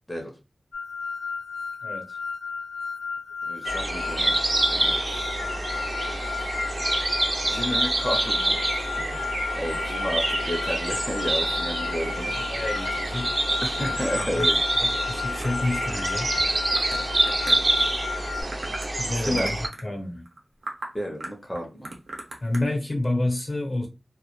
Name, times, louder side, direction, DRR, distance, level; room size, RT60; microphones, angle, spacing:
sound 1, 0.7-18.4, left 5 dB, 85° left, 0.5 m, -33 dB
voice 1, 1.8-2.2 12.1-13.3 14.2-14.5 14.8-16.4 19.0-19.6 19.8-20.2 22.4-23.9, left 1 dB, 45° left, 0.8 m, -29 dB
voice 2, 3.5-4.3 4.7-5.3 7.4-8.6 9.0-9.3 9.5-12.3 13.6-14.6 17.5-17.7 19.2-19.5 20.9-21.9, equal, 10° left, 0.5 m, -31 dB
sound 2, 3.7-19.7, right 2 dB, 40° right, 0.4 m, -26 dB
sound 3, 12.3-17.9 18.2-19.0 19.2-19.9 20.3-20.4 20.6-20.9 21.2-22.6, right 2 dB, 90° right, 0.7 m, -39 dB
2.1 x 2.0 x 2.9 m
wide cardioid pair, 75°, 0 cm